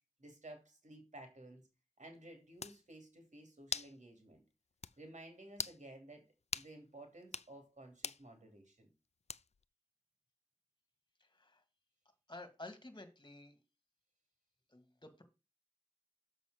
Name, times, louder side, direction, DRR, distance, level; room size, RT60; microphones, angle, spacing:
voice 1, 0.2-1.7 2.0-4.4 5.0-6.3 6.5-8.9, right 1 dB, 85° right, 3.0 m, -54 dB
sound 1, 2.2-2.3 2.6-2.8 3.7-4.0 4.3-4.4 4.8-5.0 5.5-5.8 6.5-6.7 7.2-7.5 8.0-8.2 9.3-9.6, left 5 dB, 60° left, 0.4 m, -41 dB
voice 2, 11.2-11.6 12.3-13.6 14.7-15.2, left 2 dB, 40° left, 2.0 m, -52 dB
7.0 x 5.5 x 6.5 m
wide cardioid pair, 55°, 12 cm